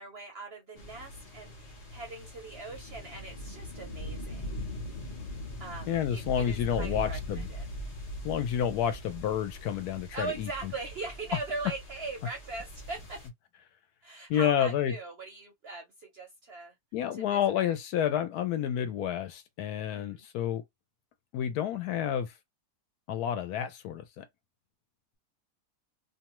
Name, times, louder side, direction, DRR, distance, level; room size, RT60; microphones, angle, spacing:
voice 1, 0.0-4.5 5.6-7.7 10.1-13.2 14.0-16.7 17.1-17.8 19.9-20.3, right 3 dB, 55° right, 0.7 m, -41 dB
sound 1, 0.8-13.3, equal, 35° left, 0.6 m, -41 dB
voice 2, 5.9-7.5 8.2-10.5 14.3-14.9 16.9-20.6 21.3-22.3 23.1-24.3, left 9 dB, 75° left, 1.0 m, -29 dB
2.7 x 2.2 x 2.9 m
omnidirectional pair, 1.7 m